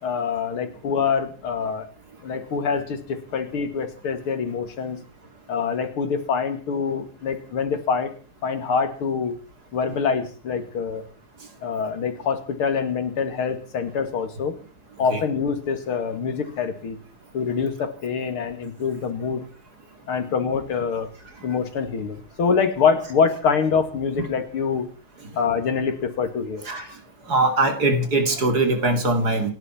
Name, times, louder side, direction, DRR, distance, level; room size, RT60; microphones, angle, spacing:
voice 1, 0.0-1.9 2.2-5.0 5.5-8.1 8.4-9.4 9.7-11.0 11.6-14.6 15.0-17.0 17.3-19.5 20.1-21.1 21.4-24.9 25.3-26.7, left 6 dB, 75° left, 8 dB, 2.9 m, -25 dB
voice 2, 27.3-29.5, right 2 dB, 45° right, 5 dB, 3.0 m, -21 dB
28.5 x 11.0 x 4.4 m, 0.39 s
omnidirectional pair, 2.4 m